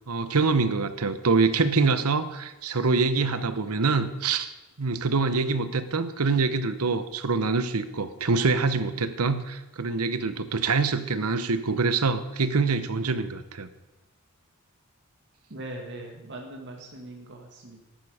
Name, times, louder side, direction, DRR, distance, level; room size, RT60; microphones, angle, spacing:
voice 1, 0.1-13.7, right 4 dB, 90° right, 12 dB, 0.9 m, -25 dB
voice 2, 15.5-17.8, right 1 dB, 55° right, 1 dB, 1.9 m, -40 dB
13.5 x 11.5 x 5.0 m, 1.1 s
head